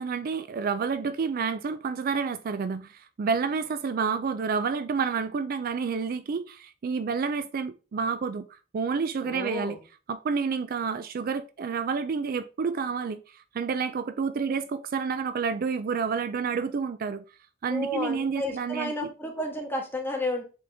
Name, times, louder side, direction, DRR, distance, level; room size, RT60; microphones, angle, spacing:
voice 1, 0.0-9.8 10.1-17.2 17.6-18.9, right 5 dB, 45° right, 0.4 m, -29 dB
voice 2, 9.2-9.8 17.7-20.4, left 1 dB, 10° left, 1.4 m, -32 dB
7.5 x 3.8 x 3.5 m
head